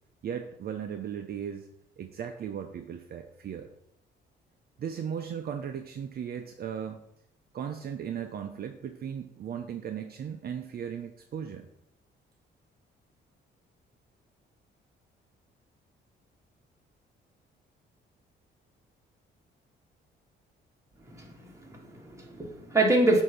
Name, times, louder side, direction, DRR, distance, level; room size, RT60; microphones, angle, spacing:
voice 1, 0.2-1.7 2.0-3.7 4.8-7.0 7.5-11.7, right 8 dB, 50° right, 6 dB, 0.6 m, -37 dB
voice 2, 21.1-23.2, right 2 dB, 15° right, 0 dB, 1.7 m, -26 dB
7.9 x 2.7 x 5.7 m, 0.76 s
cardioid pair, 90°, 20 cm